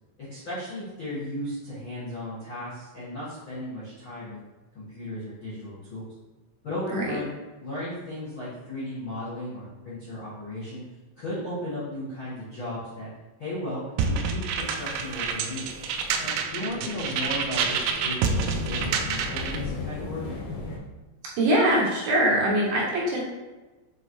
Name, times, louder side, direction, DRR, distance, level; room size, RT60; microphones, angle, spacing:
voice 1, 0.2-4.4 4.7-6.0 6.6-7.3 7.6-10.8 11.2-13.1 13.4-15.7 16.2-20.2, left 1 dB, 55° left, -11 dB, 1.4 m, -35 dB
sound 1, 14.0-19.6, right 5 dB, 85° right, 2.8 m, -28 dB
sound 2, 14.6-20.8, left 3 dB, 85° left, 1.7 m, -37 dB
voice 2, 21.4-23.2, right 1 dB, 70° right, -3 dB, 2.6 m, -22 dB
7.8 x 4.2 x 3.1 m, 1.2 s
omnidirectional pair, 4.9 m